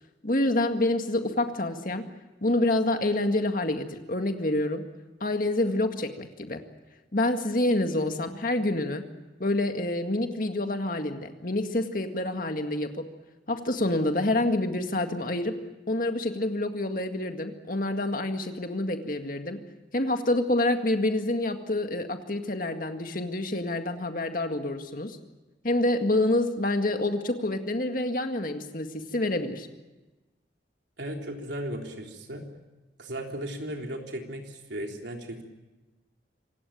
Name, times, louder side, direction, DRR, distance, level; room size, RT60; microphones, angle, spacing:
voice 1, 0.2-2.1 2.4-4.9 5.2-6.6 7.1-9.1 9.4-13.1 13.5-15.6 15.9-19.6 19.9-25.2 25.6-29.7, left 1 dB, 50° left, 6 dB, 2.0 m, -27 dB
voice 2, 31.0-32.4 33.0-35.4, right 1 dB, 75° right, 2 dB, 3.6 m, -36 dB
26.5 x 17.5 x 8.7 m, 1.1 s
head